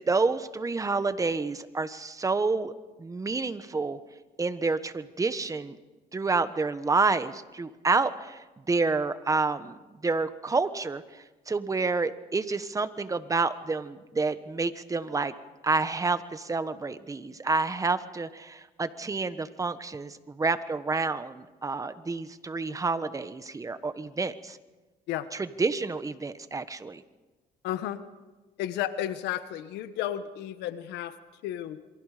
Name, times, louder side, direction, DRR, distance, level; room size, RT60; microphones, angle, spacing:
voice 1, 0.0-2.7 3.0-4.0 4.4-5.8 6.1-15.3 15.6-24.6 25.3-27.0, right 3 dB, 20° right, 12 dB, 1.2 m, -29 dB
voice 2, 27.6-28.0 28.6-31.1 31.4-31.8, left 12 dB, 85° left, 11 dB, 1.5 m, -32 dB
27.5 x 23.5 x 5.1 m, 1.2 s
cardioid pair, 110°, 17 cm